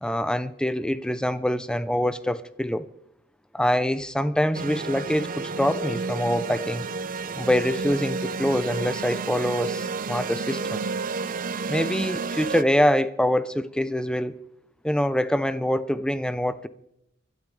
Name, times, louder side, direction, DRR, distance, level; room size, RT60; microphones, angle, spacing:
voice 1, 0.0-2.9 3.5-6.9 7.3-10.8 11.7-14.3 14.8-16.7, equal, 5° left, 0.6 m, -25 dB
sound 1, 4.5-12.6, right 4 dB, 50° right, 0.6 m, -31 dB
29.5 x 12.5 x 3.3 m
head